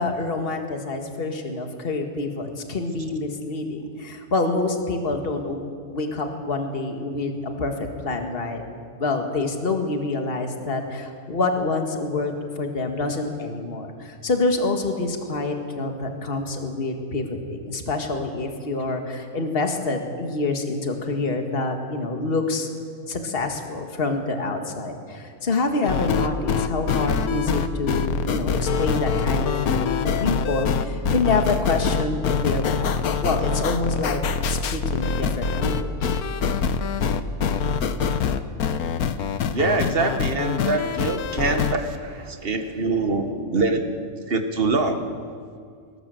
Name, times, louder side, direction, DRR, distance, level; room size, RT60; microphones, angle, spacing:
voice 1, 0.0-5.7 5.9-8.6 9.0-22.7 23.1-29.9 30.2-34.2 34.5-36.2, left 3 dB, 40° left, 4 dB, 1.9 m, -27 dB
sound 1, 25.8-41.7, left 6 dB, 90° left, 1.4 m, -24 dB
voice 2, 39.5-43.9 44.3-45.1, right 3 dB, 40° right, 6 dB, 1.7 m, -24 dB
19.5 x 18.0 x 7.8 m, 2.2 s
omnidirectional pair, 1.5 m